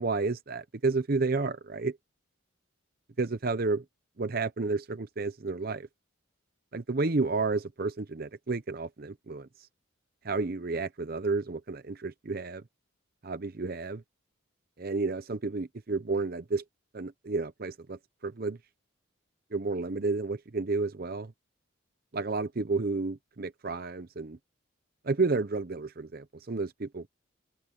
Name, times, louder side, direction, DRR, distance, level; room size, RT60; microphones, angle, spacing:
voice 1, 0.0-2.0 3.2-3.8 4.2-5.9 6.7-9.5 10.2-12.6 13.2-14.0 14.8-16.6 16.9-18.6 19.5-21.3 22.1-24.4 25.0-27.1, right 3 dB, 45° right, 0.7 m, -31 dB
open air
head